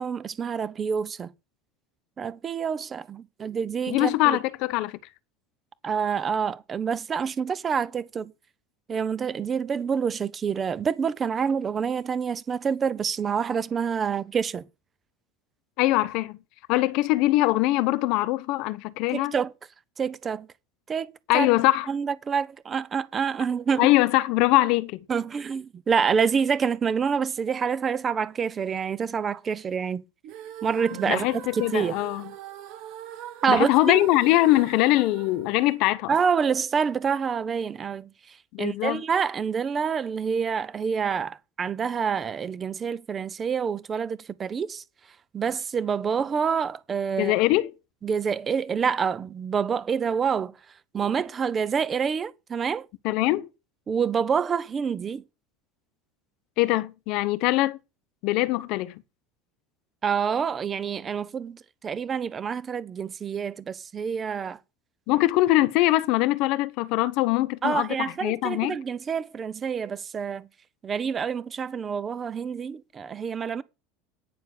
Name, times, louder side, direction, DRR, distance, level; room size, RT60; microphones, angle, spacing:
voice 1, 0.0-1.3 2.2-4.4 5.8-8.3 8.9-14.6 19.1-19.5 20.0-20.5 20.9-21.5 21.9-23.9 25.1-30.0 30.6-31.3 31.5-32.0 33.4-33.7 36.1-44.8 45.3-47.4 48.0-50.5 50.9-52.9 53.9-55.2 60.0-64.6 67.6-70.5 70.8-73.6, right 6 dB, 20° right, 0.6 m, -27 dB
voice 2, 3.9-5.0 15.8-16.4 16.7-19.3 21.3-21.9 23.8-25.0 31.0-32.2 33.5-36.1 38.5-39.0 47.2-47.7 53.0-53.5 56.6-57.8 58.2-59.0 65.1-68.8, left 17 dB, 50° left, 0.9 m, -22 dB
sound 1, 30.2-36.4, right 11 dB, 50° right, 1.4 m, -41 dB
9.6 x 6.9 x 6.5 m
cardioid pair, 170°, 0 cm